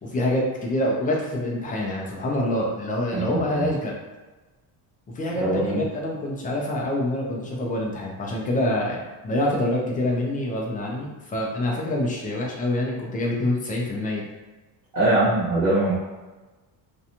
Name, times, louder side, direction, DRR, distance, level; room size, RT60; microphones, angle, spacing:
voice 1, 0.0-3.9 5.2-14.2, left 1 dB, 20° left, -2 dB, 0.3 m, -26 dB
voice 2, 3.1-3.7 5.3-5.8 14.9-16.0, right 2 dB, 55° right, -10 dB, 1.2 m, -22 dB
2.5 x 2.2 x 2.8 m, 1.2 s
cardioid pair, 165°, 42 cm